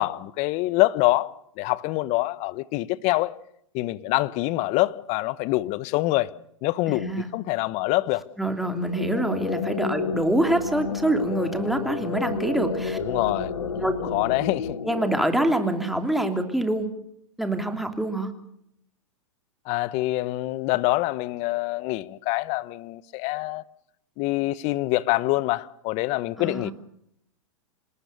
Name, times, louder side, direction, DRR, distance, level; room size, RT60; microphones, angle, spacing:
voice 1, 0.0-3.3 3.7-6.3 6.6-8.2 13.0-13.8 14.1-14.8 19.7-23.6 24.2-26.7, left 19 dB, 40° left, 0.9 m, -25 dB
voice 2, 6.9-7.3 8.4-13.0 13.8-13.9 14.8-16.9 17.4-18.3 26.4-26.7, right 1 dB, ahead, 3.0 m, -25 dB
sound 1, 8.7-16.1, left 5 dB, 90° left, 2.3 m, -31 dB
27.0 x 19.0 x 6.7 m
hypercardioid pair, 120°, 17 cm